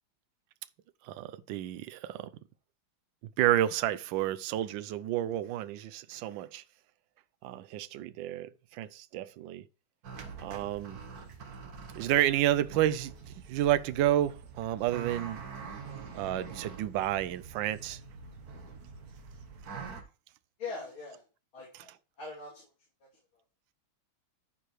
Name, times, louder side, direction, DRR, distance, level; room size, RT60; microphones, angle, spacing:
voice 1, 1.0-2.3 3.4-6.6 7.4-9.6 10.4-11.0 11.9-15.4 16.1-18.0, right 12 dB, 75° right, 1.3 m, -30 dB
sound 1, 10.0-20.0, right 5 dB, 50° right, 1.5 m, -45 dB
voice 2, 20.6-21.2 21.5-22.7, left 4 dB, 80° left, 3.8 m, -42 dB
13.5 x 4.8 x 3.1 m
omnidirectional pair, 2.2 m